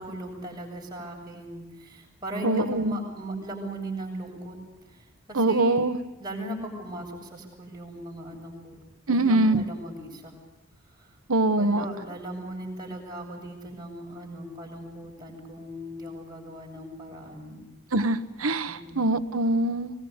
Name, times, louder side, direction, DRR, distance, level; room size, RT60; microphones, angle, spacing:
voice 1, 0.0-4.6 5.3-5.8 6.2-8.8 9.1-10.3 11.6-17.7 18.7-19.1, right 1 dB, 20° right, -2 dB, 7.4 m, -38 dB
voice 2, 2.4-3.0 5.3-6.0 9.1-9.7 11.3-11.8 17.9-19.9, right 2 dB, 80° right, 11 dB, 1.2 m, -23 dB
22.5 x 22.5 x 8.2 m, 1.0 s
head